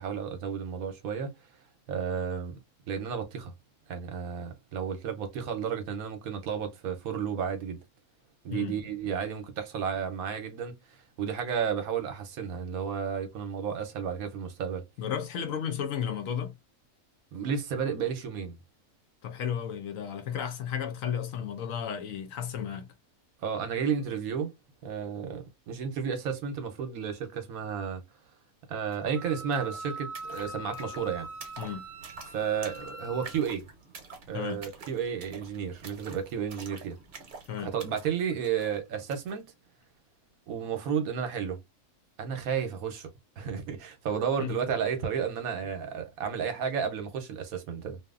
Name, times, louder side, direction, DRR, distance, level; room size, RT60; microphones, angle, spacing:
voice 1, 0.0-1.3 1.9-2.6 2.9-3.5 3.9-7.8 8.4-14.8 17.3-18.6 23.4-24.5 24.8-28.0 28.7-31.3 32.3-33.7 34.3-37.0 37.6-39.4 40.5-41.6 42.2-43.1 43.4-48.0, right 7 dB, 75° right, 1.1 m, -32 dB
voice 2, 15.0-16.5 19.2-22.9 31.6-31.8 34.3-34.6 37.5-37.7 44.4-44.5, left 8 dB, 70° left, 0.9 m, -33 dB
sound 1, 28.9-29.0 29.2-39.4, right 4 dB, 50° right, 1.0 m, -48 dB
Wind instrument woodwind instrument, 29.1-33.4, right 1 dB, 25° right, 0.9 m, -42 dB
2.7 x 2.5 x 2.3 m
omnidirectional pair, 1.5 m